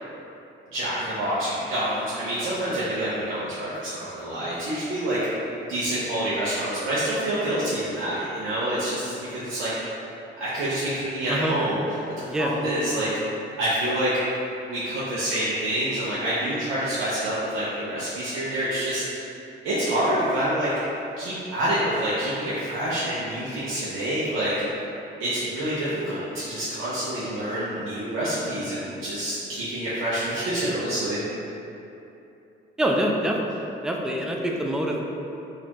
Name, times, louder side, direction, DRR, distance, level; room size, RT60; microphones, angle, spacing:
voice 1, 0.7-5.2 5.7-10.0 10.4-11.8 12.5-13.1 13.6-14.1 14.6-19.3 19.6-20.7 21.2-24.5 25.2-31.2, right 1 dB, 85° right, -10 dB, 0.7 m, -27 dB
voice 2, 32.8-33.6 33.8-35.0, right 1 dB, 5° right, 0 dB, 0.3 m, -25 dB
4.2 x 2.5 x 2.9 m, 2.8 s
cardioid pair, 90°, 20 cm